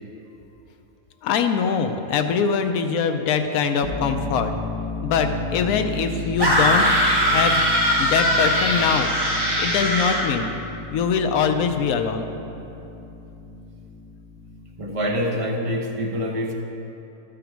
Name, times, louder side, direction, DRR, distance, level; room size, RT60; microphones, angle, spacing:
voice 1, 1.2-4.5 5.0-7.0 7.3-7.6 8.0-9.1 9.6-10.5 10.9-12.3, left 6 dB, 70° left, 7 dB, 1.0 m, -23 dB
sound 1, 3.8-15.3, left 3 dB, 5° left, 1.3 m, -34 dB
sound 2, 6.4-10.3, equal, 15° right, 1.4 m, -20 dB
voice 2, 14.8-16.5, equal, 40° right, 0 dB, 0.5 m, -25 dB
11.5 x 5.1 x 4.6 m, 2.9 s
omnidirectional pair, 1.7 m